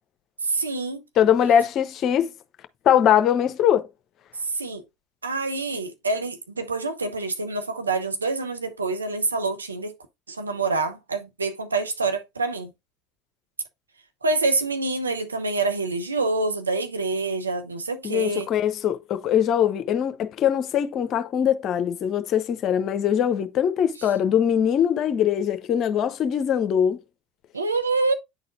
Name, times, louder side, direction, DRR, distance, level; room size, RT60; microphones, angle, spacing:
voice 1, 0.4-1.0 4.5-4.8 5.2-10.0 10.3-12.7 14.2-18.5 27.5-28.1, right 3 dB, 90° right, 0.7 m, -26 dB
voice 2, 1.2-2.3 2.8-3.9 18.0-27.0, left 9 dB, 50° left, 0.8 m, -22 dB
9.3 x 4.0 x 2.5 m
figure-of-eight pair, 65°, 0 cm